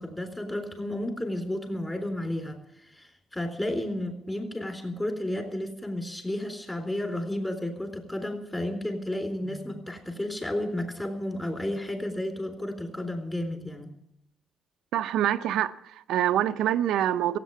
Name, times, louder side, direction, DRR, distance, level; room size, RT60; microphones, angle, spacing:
voice 1, 0.0-13.9, left 1 dB, 15° left, 3.8 m, -32 dB
voice 2, 14.9-17.4, right 11 dB, 85° right, 0.7 m, -26 dB
16.0 x 8.5 x 9.3 m
cardioid pair, 105°, 0 cm